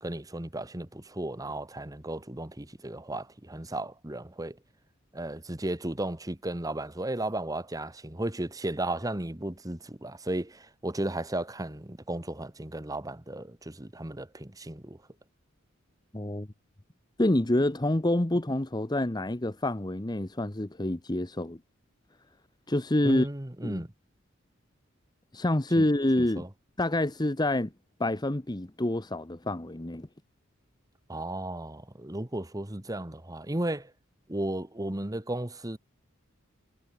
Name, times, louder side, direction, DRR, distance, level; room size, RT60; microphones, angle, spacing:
voice 1, 0.0-4.6 5.1-15.0 23.0-23.9 25.8-25.9 26.2-26.5 31.1-33.9 34.3-35.8, right 1 dB, 20° right, 1.3 m, -34 dB
voice 2, 16.1-16.5 17.2-21.6 22.7-23.3 23.6-23.8 25.3-26.5 26.8-27.7 28.0-30.1, left 1 dB, 20° left, 1.0 m, -27 dB
head